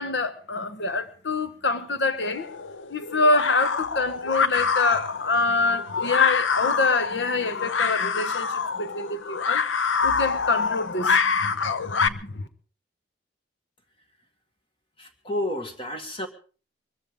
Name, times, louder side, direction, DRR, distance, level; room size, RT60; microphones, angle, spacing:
voice 1, 0.0-2.5 2.9-9.6 10.0-12.5, left 3 dB, 65° left, 1.2 m, -26 dB
sound 1, 2.2-12.1, left 5 dB, 80° left, 0.8 m, -26 dB
voice 2, 15.0-16.3, left 1 dB, 25° left, 1.9 m, -31 dB
23.5 x 14.5 x 3.7 m
head